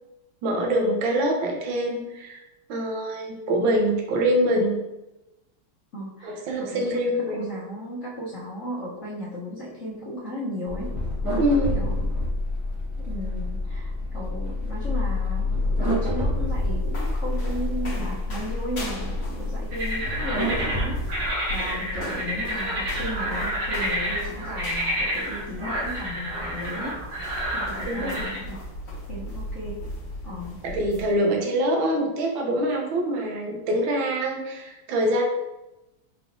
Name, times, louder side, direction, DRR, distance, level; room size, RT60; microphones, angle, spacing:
voice 1, 0.4-2.4 2.7-4.8 6.2-7.5 11.4-11.8 27.9-28.3 30.6-35.2, right 1 dB, 70° right, 0 dB, 1.5 m, -24 dB
voice 2, 5.9-6.8 7.3-10.9 11.7-12.1 13.0-21.0 21.5-27.0 27.5-28.6 29.1-29.8 30.2-30.6, equal, 70° left, -8 dB, 0.7 m, -35 dB
sound 1, 10.7-21.3, left 1 dB, 15° right, 0.9 m, -28 dB
sound 2, 16.0-31.1, left 1 dB, 35° left, 1.3 m, -37 dB
sound 3, 19.7-28.4, equal, 50° right, 0.9 m, -30 dB
4.8 x 3.2 x 2.6 m, 0.97 s
omnidirectional pair, 2.4 m